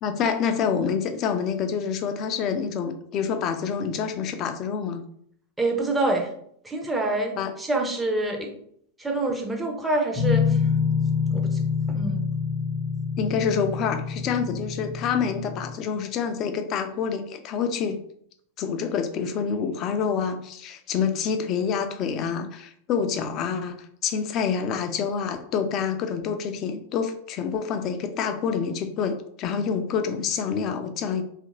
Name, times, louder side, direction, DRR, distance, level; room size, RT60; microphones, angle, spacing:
voice 1, 0.0-5.0 7.4-7.5 13.2-18.0 18.6-31.2, left 6 dB, 35° left, 7 dB, 0.4 m, -27 dB
voice 2, 5.6-6.3 6.6-8.5 9.0-10.6 11.3-12.3, right 2 dB, 10° right, 2 dB, 0.6 m, -26 dB
sound 1, 10.1-15.7, left 6 dB, 35° right, 1.0 m, -26 dB
2.8 x 2.4 x 2.8 m, 0.66 s
figure-of-eight pair, 90°, 0 cm